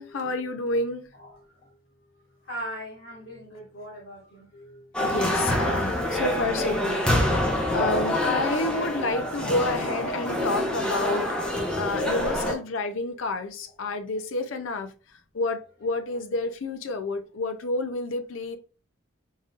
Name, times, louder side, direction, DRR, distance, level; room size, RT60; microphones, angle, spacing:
voice 1, 0.0-1.1 4.5-7.4 7.7-11.4 11.7-18.6, left 2 dB, 80° left, 0.5 m, -30 dB
voice 2, 1.2-1.7 2.4-4.5 8.8-8.9, right 1 dB, 65° left, 1.7 m, -40 dB
sound 1, 4.9-12.5, left 1 dB, 5° left, 0.8 m, -26 dB
4.0 x 3.7 x 2.4 m
head